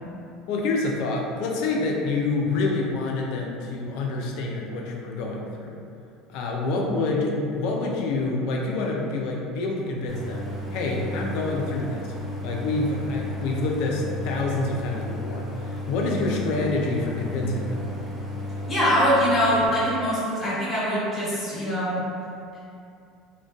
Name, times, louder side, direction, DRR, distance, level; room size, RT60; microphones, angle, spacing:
voice 1, 0.5-5.8 6.3-12.1 12.4-17.8, left 3 dB, 65° left, -1 dB, 0.4 m, -27 dB
Idling, 10.1-19.7, left 1 dB, 10° right, 0.5 m, -34 dB
voice 2, 18.7-22.0, equal, 20° left, -10 dB, 1.2 m, -23 dB
2.4 x 2.1 x 2.3 m, 2.5 s
hypercardioid pair, 85°, 0 cm